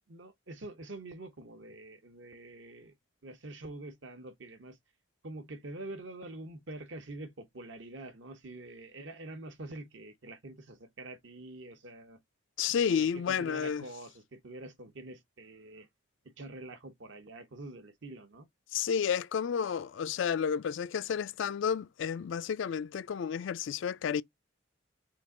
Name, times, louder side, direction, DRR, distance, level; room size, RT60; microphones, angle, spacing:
voice 1, 0.1-2.9 3.2-4.8 5.2-12.2 12.7-15.9 16.4-18.5, right 2 dB, 65° right, 0.9 m, -46 dB
voice 2, 12.6-13.8 18.7-24.2, left 7 dB, 70° left, 0.3 m, -31 dB
3.8 x 2.9 x 3.6 m
head